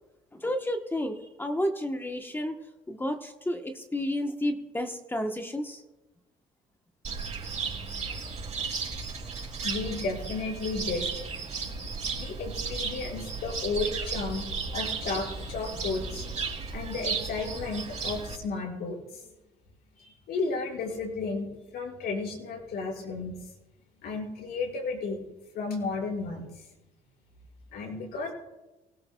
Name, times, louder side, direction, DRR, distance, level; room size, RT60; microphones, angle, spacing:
voice 1, 0.3-2.6 2.9-5.8, left 1 dB, 10° left, 5 dB, 1.0 m, -31 dB
Cricket, 7.0-18.3, right 4 dB, 45° right, 4.8 m, -34 dB
voice 2, 9.6-11.1 11.5-16.2 16.7-19.3 20.0-23.3 24.0-25.2 25.5-26.7 27.7-28.3, left 4 dB, 70° left, -2 dB, 5.3 m, -33 dB
19.0 x 17.5 x 2.3 m, 1.1 s
cardioid pair, 110°, 17 cm